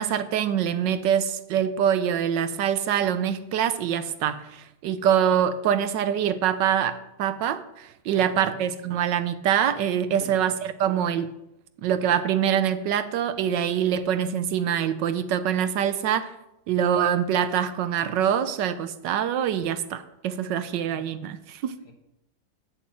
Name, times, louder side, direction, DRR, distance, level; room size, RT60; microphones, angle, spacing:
voice 1, 0.0-11.3 11.8-16.3 16.7-21.8, right 9 dB, 80° right, 12 dB, 1.4 m, -25 dB
voice 2, 8.1-8.6 10.2-10.6 20.3-20.6 20.8-21.1 21.8-21.9, left 3 dB, 50° left, 3 dB, 1.8 m, -46 dB
8.2 x 7.2 x 7.6 m, 0.87 s
omnidirectional pair, 1.9 m